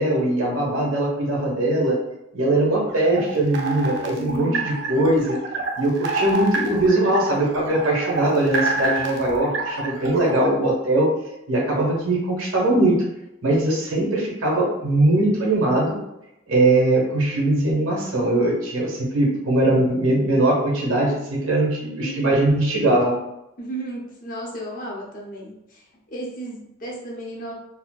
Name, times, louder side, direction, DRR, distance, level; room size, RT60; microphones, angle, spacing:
voice 1, 0.0-2.0 2.3-5.4 5.8-11.1 11.5-13.0 13.4-16.0 16.5-23.2, right 1 dB, 80° right, -3 dB, 1.1 m, -21 dB
sound 1, 2.9-10.5, right 3 dB, 60° right, 0.5 m, -28 dB
voice 2, 4.2-4.7 22.0-22.5 23.6-27.5, right 1 dB, 40° left, -3 dB, 0.7 m, -34 dB
4.1 x 2.1 x 2.3 m, 0.89 s
head